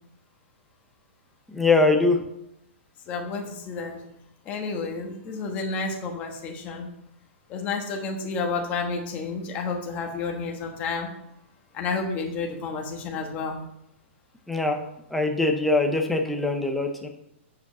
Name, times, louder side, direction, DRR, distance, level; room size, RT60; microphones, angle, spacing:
voice 1, 1.5-2.2 14.5-14.8 15.1-17.1, left 3 dB, ahead, 2 dB, 0.7 m, -22 dB
voice 2, 3.1-4.0 4.4-6.9 7.5-11.1 11.7-13.6, left 4 dB, 20° left, 2 dB, 1.3 m, -30 dB
7.3 x 5.1 x 6.8 m, 0.80 s
hypercardioid pair, 170°, 7 cm